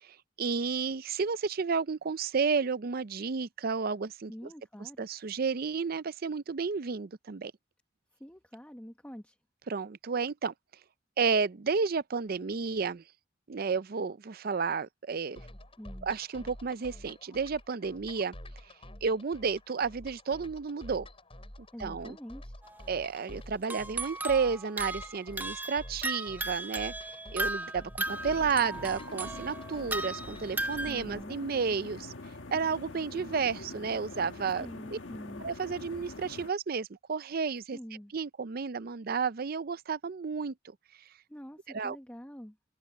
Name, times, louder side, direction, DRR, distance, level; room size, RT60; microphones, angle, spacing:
voice 1, 0.4-4.3 4.8-7.5 9.7-10.5 11.2-13.0 13.5-15.4 16.0-18.3 19.0-21.1 21.8-22.2 22.9-26.9 27.3-32.1 32.5-35.0 35.4-37.8 38.1-40.5 41.7-42.0, right 5 dB, 50° right, 0.5 m, -31 dB
voice 2, 4.3-5.1 8.2-9.4 15.8-16.1 21.7-22.6 30.9-31.4 34.6-35.4 37.7-38.1 41.3-42.6, equal, 10° left, 1.3 m, -46 dB
sound 1, 15.4-31.2, left 1 dB, 30° left, 5.7 m, -49 dB
sound 2, 22.6-22.8 23.6-31.0, right 2 dB, 10° right, 0.7 m, -36 dB
sound 3, 28.0-36.5, left 2 dB, 80° left, 1.5 m, -44 dB
head